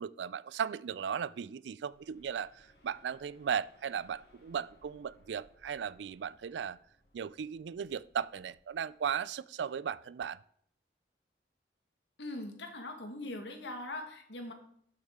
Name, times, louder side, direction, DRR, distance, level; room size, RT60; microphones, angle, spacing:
voice 1, 0.0-6.8 7.1-10.4, right 7 dB, 85° right, 19 dB, 0.4 m, -36 dB
sound 1, 1.9-9.0, left 1 dB, 65° left, 1.8 m, -66 dB
voice 2, 12.2-14.5, left 1 dB, 85° left, 5 dB, 1.6 m, -41 dB
12.0 x 6.4 x 3.6 m, 0.66 s
head